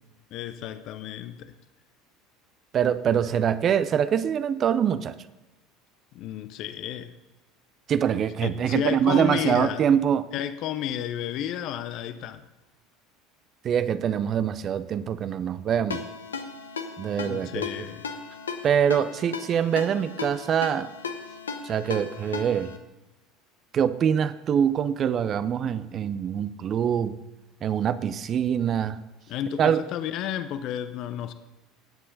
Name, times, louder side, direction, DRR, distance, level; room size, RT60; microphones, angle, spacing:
voice 1, 0.3-1.5 6.1-7.1 8.4-9.8 10.3-12.5 17.2-18.1 29.3-31.3, left 10 dB, 55° left, 11 dB, 0.7 m, -32 dB
voice 2, 2.7-5.2 7.9-10.3 13.6-16.0 17.0-17.7 18.6-20.9 21.6-22.7 23.7-27.2 27.6-29.0 29.6-29.8, right 8 dB, 40° right, 14 dB, 0.6 m, -24 dB
Ringtone, 15.9-22.8, left 5 dB, 85° left, 0.9 m, -36 dB
18.5 x 7.7 x 4.0 m, 1.0 s
hypercardioid pair, 70°, 0 cm